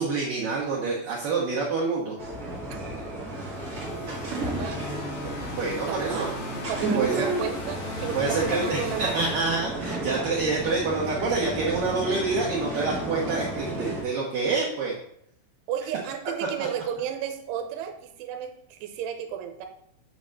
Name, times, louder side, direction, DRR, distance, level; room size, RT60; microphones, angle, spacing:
voice 1, 0.0-2.2 5.2-6.3 6.9-7.3 8.1-14.9, right 3 dB, 65° right, -4 dB, 2.3 m, -27 dB
sound 1, 2.2-14.0, right 1 dB, 40° right, 1.3 m, -33 dB
sound 2, 3.3-10.2, left 3 dB, 80° left, 4.8 m, -38 dB
voice 2, 3.9-4.8 5.7-6.4 6.7-9.3 9.9-10.0 15.7-19.7, right 9 dB, 85° right, 5 dB, 3.2 m, -33 dB
8.8 x 4.2 x 6.4 m, 0.71 s
omnidirectional pair, 5.5 m